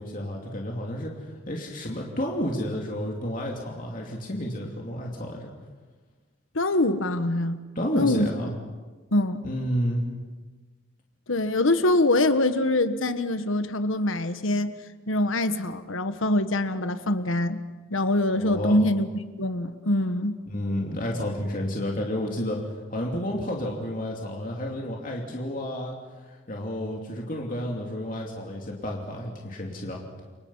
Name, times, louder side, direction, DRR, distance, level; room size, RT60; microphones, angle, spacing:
voice 1, 0.0-5.5 7.7-8.5 9.4-10.1 18.4-18.8 20.5-30.0, equal, 45° left, -1 dB, 2.8 m, -31 dB
voice 2, 6.5-7.6 7.9-8.3 9.1-9.4 11.3-14.7 15.1-17.6 17.9-19.1 19.4-20.4, left 1 dB, 90° left, 10 dB, 1.4 m, -24 dB
29.5 x 24.5 x 5.7 m, 1.4 s
head